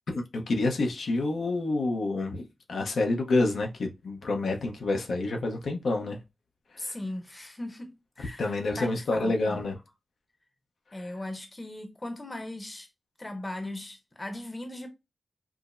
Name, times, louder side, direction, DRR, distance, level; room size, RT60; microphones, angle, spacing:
voice 1, 0.1-6.2 6.7-6.9 8.4-9.7, left 2 dB, 90° left, 0.8 m, -28 dB
voice 2, 6.8-9.6 10.9-12.9 13.2-14.9, left 1 dB, 25° left, 0.7 m, -38 dB
4.8 x 2.0 x 2.5 m
wide cardioid pair, 85°, 0 cm